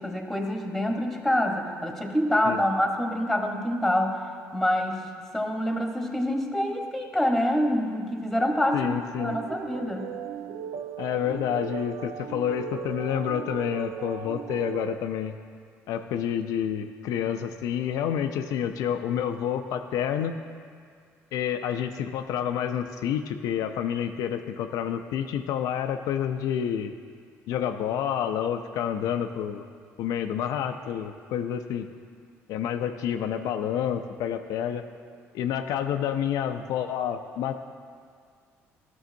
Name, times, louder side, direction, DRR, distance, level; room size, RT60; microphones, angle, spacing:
voice 1, 0.0-4.2 4.5-5.0 5.3-8.9 9.2-10.1, left 1 dB, ahead, 2 dB, 1.2 m, -26 dB
voice 2, 8.7-9.4 11.0-15.4 15.9-20.4 21.3-26.9 27.5-29.6 30.0-31.9 32.5-34.8 35.3-37.5, left 9 dB, 75° left, 7 dB, 0.4 m, -29 dB
sound 1, 9.2-15.0, right 8 dB, 70° right, 0.4 m, -37 dB
12.5 x 6.1 x 2.6 m, 2.1 s
supercardioid pair, 70°, 6 cm